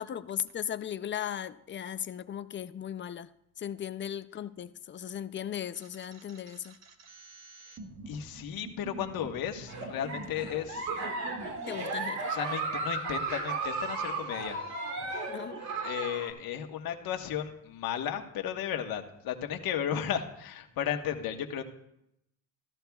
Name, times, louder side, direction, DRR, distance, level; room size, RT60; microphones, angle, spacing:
voice 1, 0.0-3.3 3.6-6.7 11.7-12.4 15.3-15.6, left 9 dB, 30° left, 13 dB, 0.4 m, -37 dB
sound 1, 5.8-11.5, right 3 dB, 45° right, 1.4 m, -48 dB
voice 2, 8.1-10.9 12.2-14.6 15.8-21.6, left 9 dB, 60° left, 5 dB, 1.4 m, -34 dB
Giggle, 9.6-16.3, right 3 dB, 65° right, 3.0 m, -35 dB
15.5 x 13.5 x 2.3 m, 0.80 s
cardioid pair, 110°, 39 cm